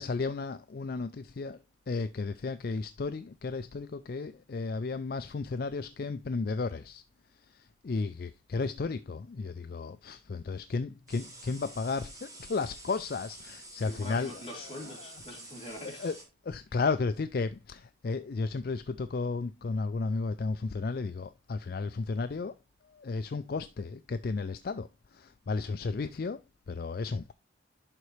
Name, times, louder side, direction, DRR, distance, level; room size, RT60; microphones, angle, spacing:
voice 1, 0.0-1.6 1.9-7.0 7.8-14.3 16.0-16.2 16.5-22.5 23.0-24.9 25.1-26.4 26.7-27.2, left 4 dB, 50° left, 0.4 m, -33 dB
sound 1, 11.1-16.2, right 2 dB, 20° right, 1.8 m, -49 dB
voice 2, 13.8-16.1, left 1 dB, 30° left, 2.8 m, -44 dB
11.0 x 4.1 x 3.2 m
head